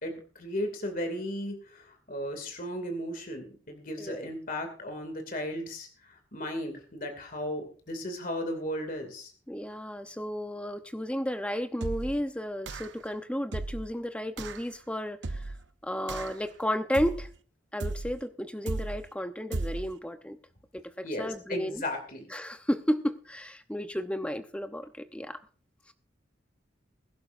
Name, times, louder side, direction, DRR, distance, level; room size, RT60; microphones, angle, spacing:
voice 1, 0.0-9.3 21.0-22.2, equal, 45° left, 5 dB, 2.6 m, -35 dB
voice 2, 4.0-4.3 9.5-15.5 15.8-17.3 17.7-20.4 20.7-21.8 22.3-25.4 25.9-26.0, equal, 5° left, 8 dB, 0.8 m, -33 dB
sound 1, 11.8-12.2 12.7-13.1 13.5-13.9 14.4-14.7 15.2-15.7 16.1-16.5 16.9-17.4 17.8-18.2 18.7-19.1 19.5-19.9, right 2 dB, 70° right, 0.7 m, -35 dB
22.0 x 11.5 x 2.6 m, 0.41 s
head